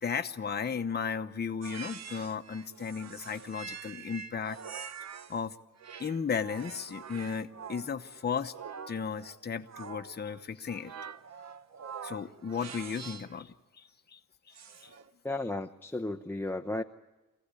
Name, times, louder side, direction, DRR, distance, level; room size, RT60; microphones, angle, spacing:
voice 1, 0.0-4.6 5.3-5.6 6.0-8.5 8.9-10.9 12.0-14.2 14.5-14.6 14.8-14.9, left 6 dB, 30° left, 6 dB, 0.9 m, -35 dB
sound 1, 1.6-5.4 5.8-13.4 14.5-15.1, right 6 dB, 50° right, 0.9 m, -45 dB
voice 2, 15.2-16.8, left 2 dB, 5° left, 2 dB, 0.7 m, -34 dB
23.5 x 16.5 x 9.8 m, 1.1 s
wide cardioid pair, 135°, 34 cm